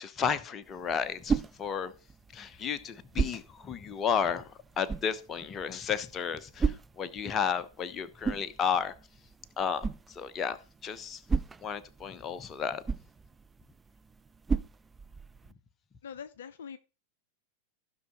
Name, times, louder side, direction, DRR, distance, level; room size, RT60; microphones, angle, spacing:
voice 1, 0.0-1.9 2.3-8.9 9.6-10.6 10.8-11.2 11.6-12.8, left 7 dB, 25° left, 1.0 m, -33 dB
sound 1, 0.6-15.5, right 5 dB, 15° right, 0.4 m, -37 dB
voice 2, 16.0-16.8, left 7 dB, 60° left, 0.5 m, -43 dB
15.0 x 5.8 x 4.0 m
figure-of-eight pair, 90°, 0 cm